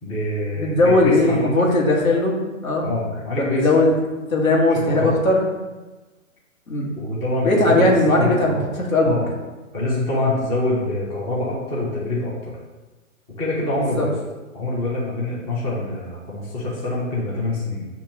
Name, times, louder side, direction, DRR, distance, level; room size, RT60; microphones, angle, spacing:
voice 1, 0.0-1.7 2.8-3.9 4.7-5.1 7.0-8.8 9.0-9.3 9.7-12.6 13.4-14.1 14.5-17.9, left 2 dB, 15° left, -6 dB, 0.7 m, -25 dB
voice 2, 0.5-2.4 2.6-2.8 3.4-3.9 4.3-5.4 6.7-6.9 7.4-9.2 13.8-14.1, left 2 dB, 80° left, -1 dB, 1.4 m, -18 dB
7.0 x 2.7 x 2.8 m, 1.2 s
hypercardioid pair, 140°, 41 cm